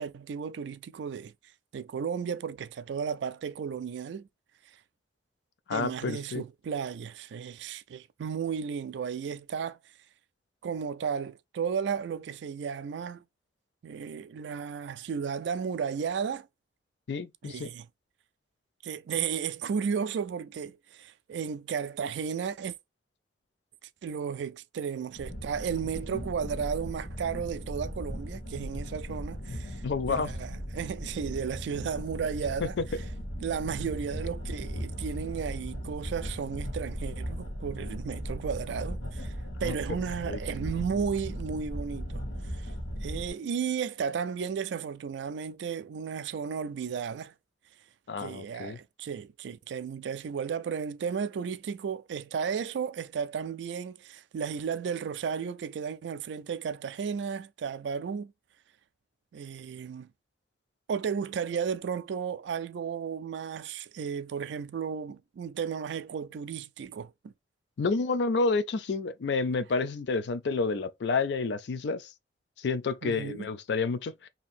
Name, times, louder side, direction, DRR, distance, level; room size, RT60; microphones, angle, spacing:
voice 1, 0.0-1.3 1.7-4.3 5.7-9.8 10.6-13.2 13.8-16.5 17.4-17.9 18.8-22.8 24.0-32.8 33.4-39.3 39.6-42.7 43.0-47.3 48.2-58.3 59.3-60.1 60.9-67.3 73.0-73.5, right 6 dB, 75° right, 0.3 m, -34 dB
voice 2, 5.7-6.4 17.1-17.7 29.8-30.3 32.8-32.9 39.6-39.8 40.3-40.4 48.1-48.8 67.8-72.1 72.6-74.1, left 4 dB, 70° left, 0.4 m, -29 dB
sound 1, 25.2-43.3, equal, 90° left, 1.1 m, -37 dB
2.8 x 2.6 x 4.1 m
head